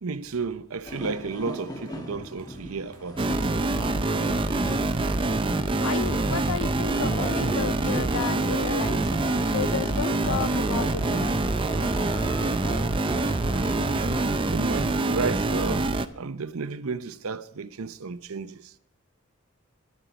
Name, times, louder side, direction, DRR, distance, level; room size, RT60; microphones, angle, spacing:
voice 1, 0.0-3.3 10.5-10.6 14.5-18.7, right 4 dB, 80° right, 0.7 m, -33 dB
sound 1, 0.8-14.2, equal, 20° left, 1.3 m, -38 dB
sound 2, 3.2-16.1, right 2 dB, 25° right, 0.5 m, -25 dB
voice 2, 5.8-11.6, left 7 dB, 75° left, 0.4 m, -33 dB
11.5 x 9.1 x 7.0 m
head